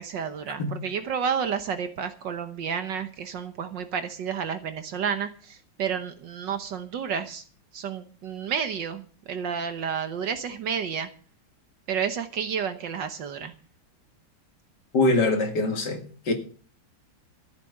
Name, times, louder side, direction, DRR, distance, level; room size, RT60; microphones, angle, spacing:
voice 1, 0.0-7.4 7.7-11.1 11.9-13.5, right 7 dB, 60° right, 1.6 m, -31 dB
voice 2, 14.9-16.3, left 2 dB, 55° left, 2.5 m, -23 dB
14.0 x 8.3 x 6.6 m
omnidirectional pair, 2.4 m